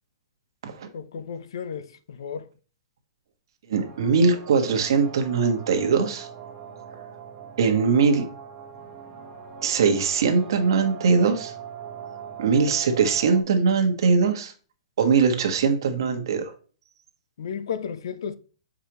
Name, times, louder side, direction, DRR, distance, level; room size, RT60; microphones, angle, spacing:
voice 1, 0.9-2.5 17.4-18.4, left 7 dB, 65° left, 0.6 m, -33 dB
voice 2, 3.7-6.3 7.6-8.2 9.6-11.5 12.4-14.5 15.0-16.5, right 5 dB, 55° right, 1.3 m, -21 dB
sound 1, 3.8-13.4, right 7 dB, 10° right, 1.0 m, -41 dB
7.3 x 4.9 x 3.0 m
hypercardioid pair, 175°, 3 cm